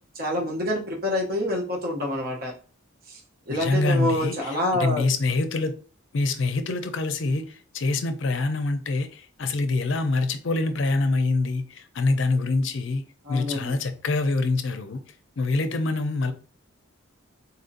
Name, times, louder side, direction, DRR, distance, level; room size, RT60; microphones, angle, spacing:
voice 1, 0.1-2.5 3.1-3.2 3.5-5.0 13.2-13.8, left 1 dB, 45° right, 0.7 m, -27 dB
voice 2, 3.5-5.8 6.1-13.0 13.3-15.0 15.4-16.3, left 3 dB, 65° left, 0.5 m, -25 dB
4.1 x 2.6 x 2.5 m
head